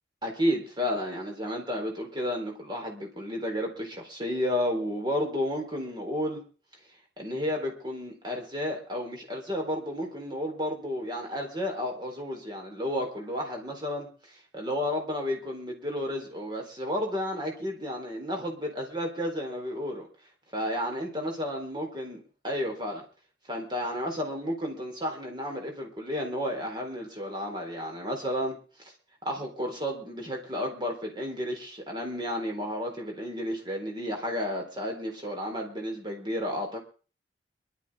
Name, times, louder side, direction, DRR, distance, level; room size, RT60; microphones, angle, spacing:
voice 1, 0.2-6.4 7.2-20.1 20.5-23.0 23.5-28.9 29.2-36.8, equal, 25° right, 2 dB, 4.0 m, -32 dB
23.0 x 12.5 x 3.7 m, 0.38 s
head